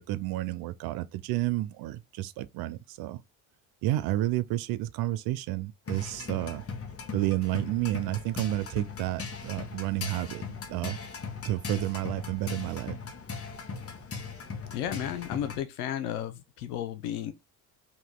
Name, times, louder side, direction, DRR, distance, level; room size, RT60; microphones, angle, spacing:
voice 1, 0.0-3.2 3.8-6.6 7.1-11.0 11.4-13.0, right 16 dB, 55° right, 0.5 m, -31 dB
sound 1, 5.9-15.6, left 5 dB, 30° left, 1.2 m, -39 dB
voice 2, 14.7-17.3, left 10 dB, 75° left, 0.8 m, -33 dB
3.0 x 2.8 x 3.7 m
hypercardioid pair, 60°, 45 cm